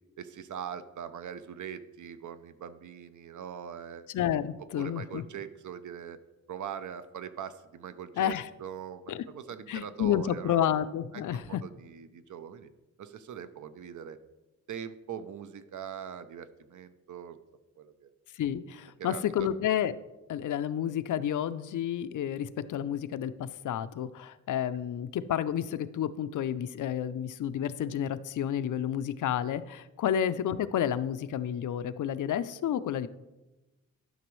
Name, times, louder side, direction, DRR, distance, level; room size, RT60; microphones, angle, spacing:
voice 1, 0.2-4.1 4.8-6.2 6.5-10.8 11.1-12.7 13.0-14.2 14.7-17.4 17.8-18.1 19.0-19.5, right 8 dB, 80° right, 12 dB, 0.6 m, -42 dB
voice 2, 4.1-5.2 8.2-8.5 9.1-9.2 9.7-11.6 18.3-19.9 20.3-33.1, left 10 dB, 90° left, 14 dB, 0.5 m, -30 dB
12.0 x 6.0 x 3.1 m, 1.0 s
wide cardioid pair, 145°, 30 cm